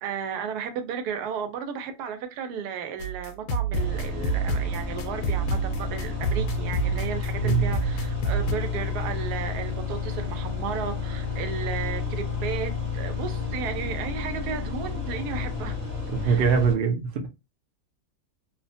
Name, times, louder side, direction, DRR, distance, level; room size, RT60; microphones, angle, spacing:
voice 1, 0.0-15.8 16.2-16.5, right 7 dB, 85° right, 1.1 m, -34 dB
sound 1, 3.0-8.5, right 4 dB, 70° left, 0.9 m, -28 dB
sound 2, 3.7-16.7, left 5 dB, 50° right, 1.0 m, -31 dB
voice 2, 16.1-17.3, right 5 dB, 65° right, 0.5 m, -23 dB
2.7 x 2.1 x 2.6 m
omnidirectional pair, 1.6 m